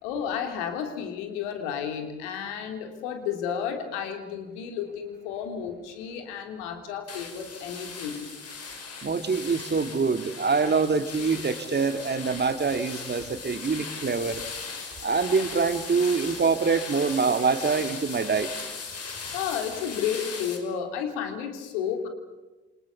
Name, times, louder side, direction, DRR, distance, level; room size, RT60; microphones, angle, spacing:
voice 1, 0.0-8.2 19.3-22.1, left 8 dB, 70° left, 5 dB, 3.5 m, -32 dB
sound 1, 7.1-20.6, left 4 dB, 45° left, 5.2 m, -38 dB
voice 2, 9.0-14.4 15.0-18.5, right 4 dB, 30° right, 9 dB, 2.1 m, -25 dB
28.5 x 26.5 x 7.2 m, 1.2 s
figure-of-eight pair, 45°, 36 cm